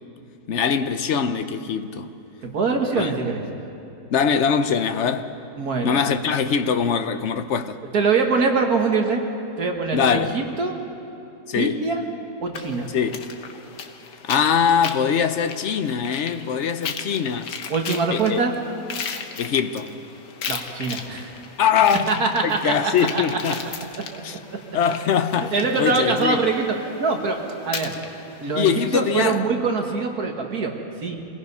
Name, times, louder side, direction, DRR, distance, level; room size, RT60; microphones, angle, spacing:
voice 1, 0.5-2.1 3.0-3.1 4.1-5.3 5.8-7.8 9.9-10.4 11.5-11.8 12.9-13.3 14.2-17.5 18.1-18.4 19.4-19.9 21.6-22.1 22.4-23.6 24.2-24.4 24.7-25.5 25.8-26.4 28.5-29.4, left 7 dB, 55° left, 0.9 m, -22 dB
voice 2, 2.4-3.4 5.6-6.0 7.9-9.2 9.6-10.7 11.5-12.0 12.4-12.9 17.7-18.5 20.5-21.3 22.1-23.5 25.4-27.4 27.7-27.9 28.4-31.2, right 4 dB, 60° right, 2.0 m, -23 dB
sound 1, 12.5-29.3, left 6 dB, 85° left, 1.8 m, -37 dB
26.0 x 18.0 x 5.5 m
omnidirectional pair, 1.8 m